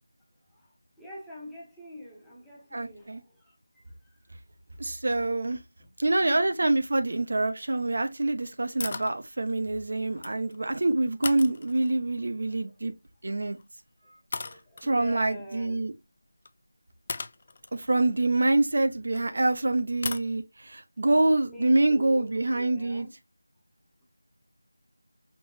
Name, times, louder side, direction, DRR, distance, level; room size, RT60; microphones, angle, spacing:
voice 1, 0.5-4.2 5.8-5.9 12.5-12.8 14.4-15.9 21.4-23.1, equal, ahead, 0.9 m, -46 dB
voice 2, 2.7-3.2 4.8-5.6 6.0-12.9 13.2-13.6 14.8-15.9 17.7-23.1, right 2 dB, 50° right, 0.6 m, -26 dB
sound 1, 8.8-9.2 10.0-10.6 11.2-12.1 13.4-13.6 14.3-14.9 16.4-16.5 17.1-19.2 20.0-20.3, left 4 dB, 30° left, 0.3 m, -37 dB
5.3 x 3.0 x 2.3 m
figure-of-eight pair, 170°, 0 cm